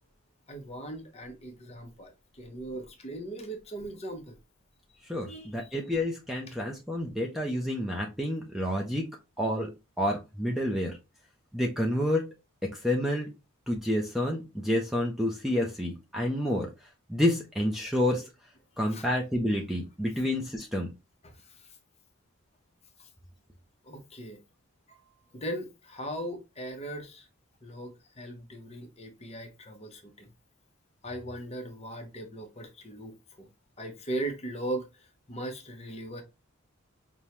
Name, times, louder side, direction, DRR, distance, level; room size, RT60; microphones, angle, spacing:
voice 1, 0.5-4.4 5.2-5.7 6.5-6.6 18.9-19.1 21.2-21.8 23.0-23.1 23.8-24.4 24.9-27.3 27.6-30.3 31.0-33.5 33.8-36.2, right 1 dB, 30° left, 0.8 m, -39 dB
voice 2, 5.1-9.1 9.4-9.7 10.0-11.0 11.5-12.3 12.6-13.3 13.7-16.7 17.1-18.2 18.8-20.9, left 1 dB, ahead, 0.5 m, -29 dB
5.2 x 2.2 x 2.9 m
head